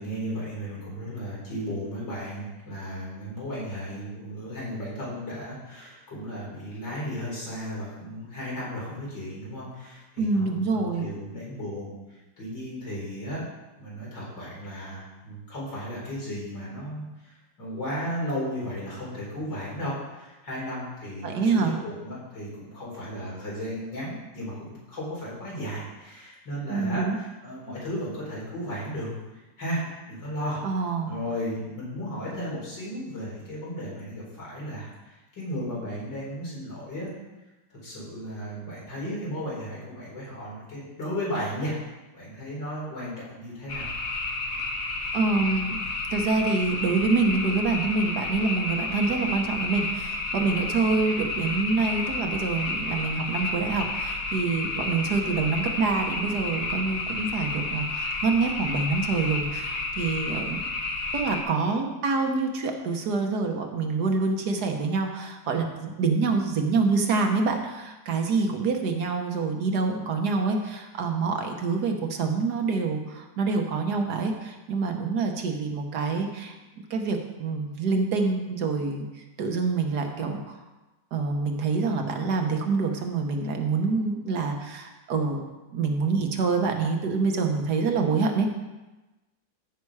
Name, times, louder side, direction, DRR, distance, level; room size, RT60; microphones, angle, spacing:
voice 1, 0.0-11.9 12.4-13.4 13.8-29.8 30.1-30.6 31.1-37.1 37.7-41.7 42.1-43.9, equal, 85° left, -7 dB, 4.9 m, -35 dB
voice 2, 10.2-11.1 21.2-21.8 26.7-27.2 30.6-31.1 45.1-45.8 46.1-60.6 61.1-76.5 76.9-79.0 79.4-80.6 81.1-85.4 85.7-88.5, right 4 dB, 65° right, 4 dB, 1.7 m, -26 dB
sound 1, 43.7-61.4, left 3 dB, 50° left, 1.7 m, -31 dB
14.5 x 5.9 x 4.8 m, 1.1 s
omnidirectional pair, 1.9 m